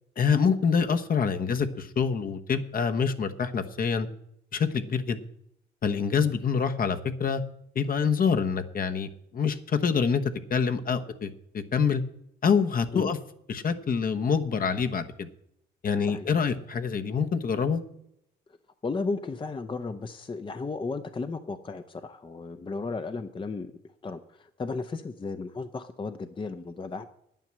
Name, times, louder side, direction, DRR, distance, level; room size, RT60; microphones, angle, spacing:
voice 1, 0.2-4.1 4.5-5.2 5.8-7.4 7.7-11.3 11.5-12.0 12.4-13.2 13.5-15.3 15.8-17.8, left 6 dB, 45° left, 8 dB, 1.1 m, -26 dB
voice 2, 18.8-23.7 24.0-27.1, left 3 dB, 25° left, 9 dB, 0.7 m, -34 dB
9.6 x 9.2 x 7.5 m, 0.76 s
cardioid pair, 90°, 20 cm